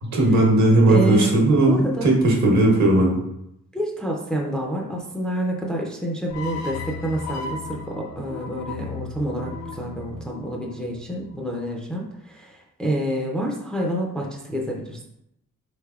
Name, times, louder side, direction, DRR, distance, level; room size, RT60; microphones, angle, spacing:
voice 1, 0.0-3.2, right 2 dB, 65° right, -1 dB, 0.9 m, -17 dB
voice 2, 0.9-1.3 1.7-2.1 3.7-15.0, equal, ahead, -1 dB, 0.4 m, -28 dB
sound 1, 6.3-11.5, left 3 dB, 60° left, 0.5 m, -36 dB
3.4 x 3.3 x 2.3 m, 0.80 s
wide cardioid pair, 125°, 31 cm